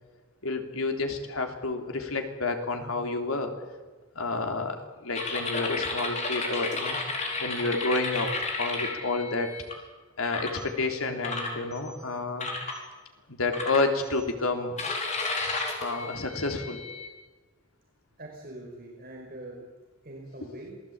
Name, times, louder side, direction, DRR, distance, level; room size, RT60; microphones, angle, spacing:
voice 1, 0.4-3.5 4.2-7.0 7.4-8.3 8.6-9.5 10.2-12.5 13.3-14.8 15.8-16.8, left 3 dB, 85° left, 5 dB, 3.5 m, -29 dB
sound 1, 5.1-9.7 10.3-10.6 11.2-12.0 12.4-12.8 13.5-14.2 14.8-17.1, left 3 dB, 35° left, 4.5 m, -33 dB
voice 2, 18.2-19.7 20.0-20.8, right 1 dB, 45° right, -1 dB, 5.0 m, -43 dB
27.0 x 19.0 x 8.8 m, 1.3 s
head